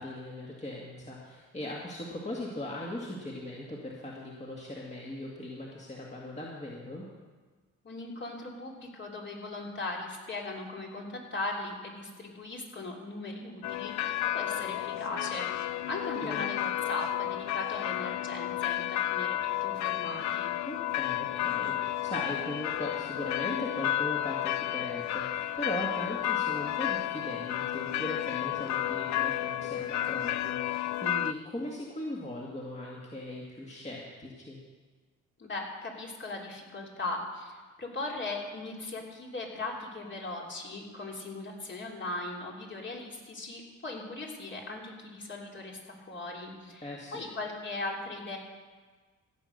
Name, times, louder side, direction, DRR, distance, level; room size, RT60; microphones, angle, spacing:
voice 1, 0.0-7.1 16.2-16.5 20.7-34.6 46.8-47.2, left 1 dB, 20° left, -3 dB, 2.0 m, -39 dB
voice 2, 7.8-20.5 35.4-48.4, left 2 dB, 40° left, -1 dB, 3.2 m, -39 dB
sound 1, 13.6-31.3, left 13 dB, 65° left, 0.5 m, -32 dB
15.0 x 8.3 x 6.5 m, 1.4 s
cardioid pair, 90°, 30 cm